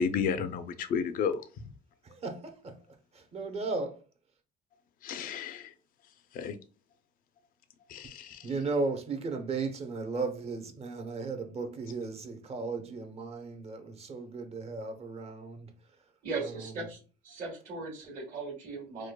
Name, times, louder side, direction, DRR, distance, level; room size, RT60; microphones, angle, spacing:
voice 1, 0.0-1.5 5.0-5.7 6.3-6.5 7.9-8.5, left 6 dB, 55° left, 0.5 m, -32 dB
voice 2, 2.0-2.8 3.1-4.0 8.4-15.7 16.6-16.7, right 3 dB, 35° right, 0.8 m, -35 dB
voice 3, 16.2-17.0 17.2-19.1, right 3 dB, 55° right, 1.5 m, -38 dB
4.8 x 2.2 x 2.2 m
cardioid pair, 110°, 17 cm